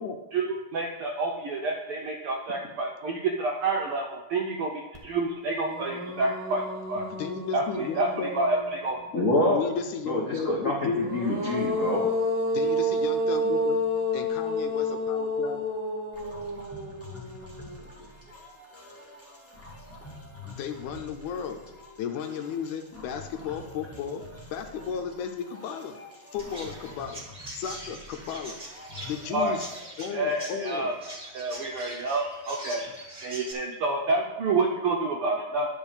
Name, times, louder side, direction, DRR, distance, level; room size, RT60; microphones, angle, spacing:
voice 1, 0.3-6.6 6.9-7.0 7.5-8.1 8.3-9.0 29.3-29.6 30.1-30.9 31.3-32.9 33.2-35.7, right 3 dB, 75° right, 1 dB, 1.3 m, -28 dB
sound 1, 4.9-5.0 5.4-9.1 10.8-18.0, left 1 dB, 40° right, 0.4 m, -30 dB
voice 2, 7.0-8.4 9.1-9.2 9.5-11.1 12.5-13.9 14.1-15.7 20.4-21.6 22.0-24.2 24.5-26.0 26.3-28.6 29.1-29.7 30.0-30.9, left 7 dB, 85° left, 5 dB, 2.2 m, -34 dB
voice 3, 9.1-9.6 10.1-12.0, left 1 dB, 65° left, -3 dB, 0.7 m, -26 dB
sound 2, 16.1-29.9, left 2 dB, 10° left, 0.8 m, -47 dB
Chirp tweet, 26.4-33.5, right 1 dB, 20° right, 1.1 m, -43 dB
10.5 x 4.3 x 7.1 m, 1.1 s
omnidirectional pair, 3.4 m